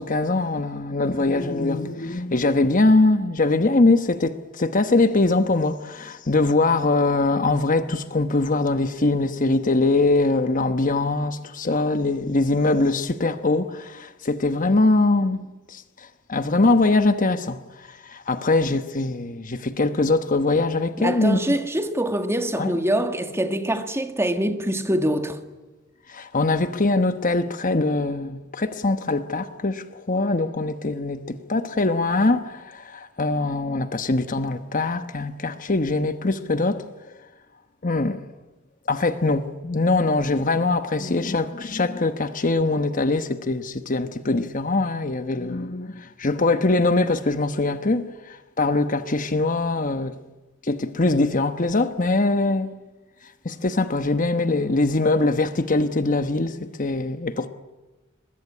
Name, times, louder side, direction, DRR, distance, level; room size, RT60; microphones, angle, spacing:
voice 1, 0.0-15.4 15.7-21.4 22.6-22.7 26.1-36.8 37.8-38.2 38.9-50.1 50.6-52.7 53.4-57.5, left 2 dB, 40° left, 1.1 m, -22 dB
voice 2, 21.0-25.4, right 1 dB, 10° right, 1.8 m, -24 dB
23.5 x 21.5 x 9.9 m
head